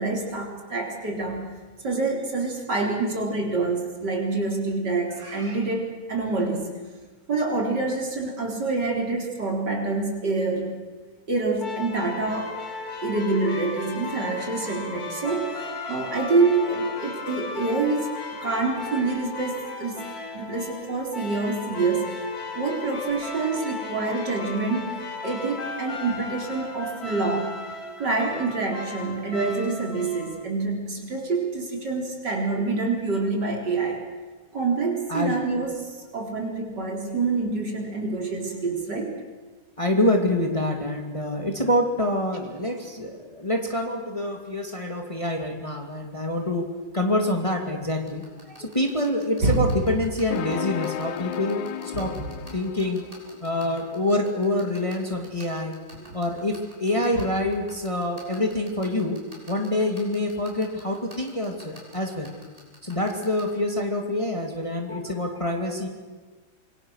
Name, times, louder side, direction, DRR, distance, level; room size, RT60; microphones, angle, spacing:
voice 1, 0.0-1.5 1.8-6.7 7.3-10.7 11.3-12.5 13.0-20.0 20.3-22.2 22.5-25.0 25.2-34.1 34.5-39.2 48.5-48.8 49.4-49.7 51.9-52.3 56.0-56.1 57.1-57.2 62.1-62.2 64.9-65.0 65.3-65.4 65.7-65.8, right 3 dB, 65° right, 1 dB, 4.5 m, -27 dB
sound 1, 11.6-30.5, left 3 dB, 55° left, 2.5 m, -36 dB
voice 2, 39.8-46.7 46.9-48.2 48.6-51.7 51.9-52.2 52.5-53.0 53.4-55.8 56.1-59.2 59.5-62.3 62.8-65.9, left 1 dB, 15° left, 3 dB, 2.4 m, -26 dB
sound 2, 47.9-63.4, equal, 20° right, 6.7 m, -47 dB
sound 3, 50.3-53.3, left 10 dB, 80° left, 1.7 m, -34 dB
26.0 x 23.5 x 6.4 m, 1.3 s
omnidirectional pair, 2.0 m